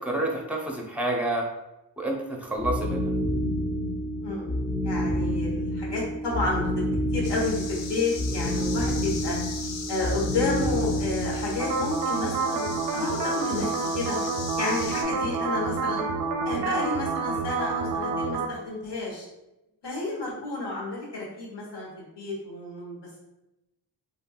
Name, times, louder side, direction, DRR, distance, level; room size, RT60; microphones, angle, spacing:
voice 1, 0.0-1.5 2.0-3.0, right 1 dB, 5° right, 0 dB, 0.6 m, -28 dB
sound 1, 2.6-11.8, equal, 35° left, 0.5 m, -28 dB
voice 2, 4.2-4.6 4.8-6.8 7.1-9.4 9.9-12.7 12.9-14.2 14.6-16.0 16.4-19.3 19.8-23.0, left 3 dB, 65° left, -3 dB, 1.2 m, -31 dB
sound 2, 7.2-15.0, left 5 dB, 80° left, 0.5 m, -39 dB
sound 3, 11.6-18.5, right 4 dB, 55° right, 0.5 m, -28 dB
3.2 x 2.6 x 2.3 m, 0.93 s
cardioid pair, 60°, 44 cm